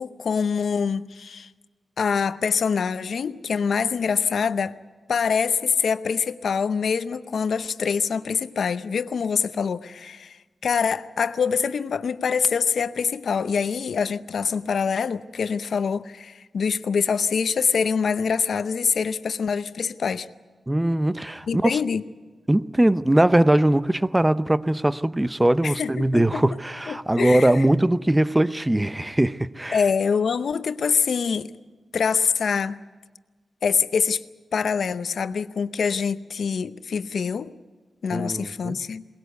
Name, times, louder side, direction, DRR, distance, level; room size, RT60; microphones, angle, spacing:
voice 1, 0.0-1.5 2.0-4.8 5.1-10.4 10.6-20.3 21.5-22.0 25.6-26.4 26.9-27.6 29.7-31.5 31.9-32.8 33.6-34.2 34.5-37.5 38.0-39.0, left 6 dB, 70° left, 0.8 m, -25 dB
voice 2, 20.7-21.7 22.5-29.8 38.1-38.8, right 1 dB, 15° right, 0.6 m, -21 dB
22.5 x 19.5 x 8.1 m
cardioid pair, 90°, 0 cm